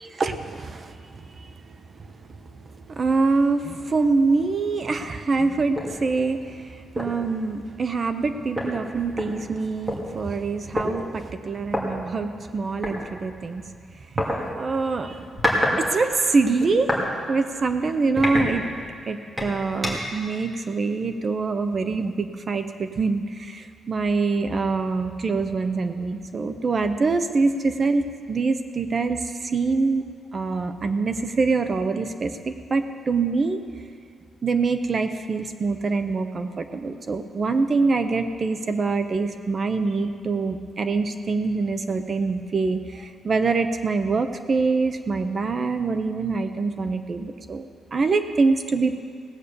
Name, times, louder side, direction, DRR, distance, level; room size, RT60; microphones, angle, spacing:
voice 1, 0.2-13.6 14.5-15.2 15.8-16.9 17.3-18.6 19.1-30.0 30.3-33.6 34.4-47.7 47.9-49.0, right 4 dB, 35° right, 8 dB, 0.7 m, -25 dB
sound 1, 5.7-6.0 6.4-6.5 7.0-7.2 8.2-8.3 8.6-10.0 10.8-10.9 11.7-11.8 12.8-13.0 14.2-14.4 15.1-15.8 16.1-17.1 17.5-17.7 18.2-19.0 19.4-20.2, equal, 10° right, 2.4 m, -26 dB
18.0 x 8.3 x 6.8 m, 2.3 s
wide cardioid pair, 160°, 0 cm